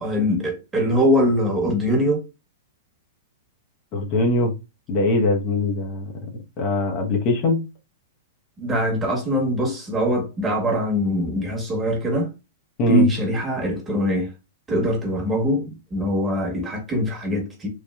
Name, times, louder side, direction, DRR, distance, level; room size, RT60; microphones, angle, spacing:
voice 1, 0.0-2.3 8.6-12.3 12.9-14.3 14.7-17.7, equal, 15° right, 1.1 m, -22 dB
voice 2, 3.9-4.5 4.9-6.1 6.6-7.6 12.8-13.1, left 2 dB, 40° left, 0.8 m, -21 dB
3.2 x 2.5 x 2.3 m
figure-of-eight pair, 105°, 0 cm